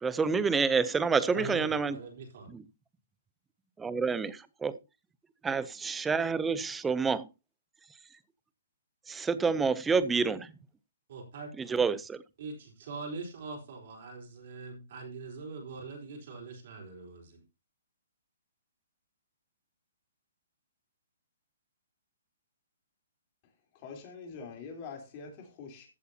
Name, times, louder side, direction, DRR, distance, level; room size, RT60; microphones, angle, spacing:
voice 1, 0.0-2.0 2.5-2.6 3.8-4.8 5.4-7.3 9.1-10.5 11.6-12.2, right 5 dB, 10° right, 0.5 m, -28 dB
voice 2, 1.3-2.5 11.1-11.5 12.4-17.4, right 4 dB, 50° right, 4.2 m, -42 dB
voice 3, 23.7-25.9, left 5 dB, 30° left, 3.5 m, -44 dB
14.5 x 8.3 x 2.8 m
hypercardioid pair, 165°, 0 cm